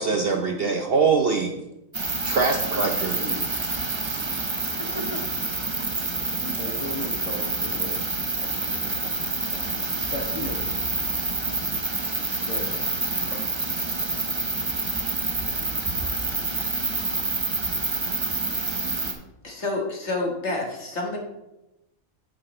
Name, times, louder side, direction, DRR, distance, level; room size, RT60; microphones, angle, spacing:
voice 1, 0.0-1.5 2.2-3.2, right 4 dB, 50° right, 3 dB, 0.8 m, -23 dB
sound 1, 1.9-19.1, right 3 dB, 25° right, 0.8 m, -27 dB
voice 2, 3.1-3.5 4.9-5.2 6.4-9.7 10.1-10.9 12.4-12.8 13.1-13.4, left 1 dB, 25° left, 0 dB, 1.7 m, -37 dB
voice 3, 19.4-21.2, left 2 dB, 55° left, 0 dB, 1.9 m, -28 dB
8.5 x 8.4 x 3.2 m, 0.91 s
omnidirectional pair, 1.5 m